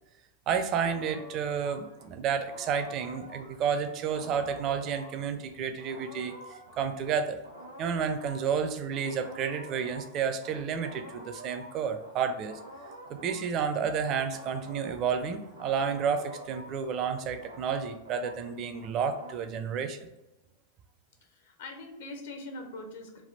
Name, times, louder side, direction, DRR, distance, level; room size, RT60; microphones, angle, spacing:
voice 1, 0.5-7.4 7.8-12.6 13.1-20.0, right 7 dB, 35° right, 8 dB, 0.4 m, -31 dB
sound 1, 0.8-12.1 12.4-19.3, right 1 dB, 75° right, 0.9 m, -48 dB
voice 2, 21.2-23.2, left 2 dB, 55° left, 4 dB, 0.7 m, -42 dB
3.4 x 2.4 x 3.9 m, 0.95 s
figure-of-eight pair, 90°, 0 cm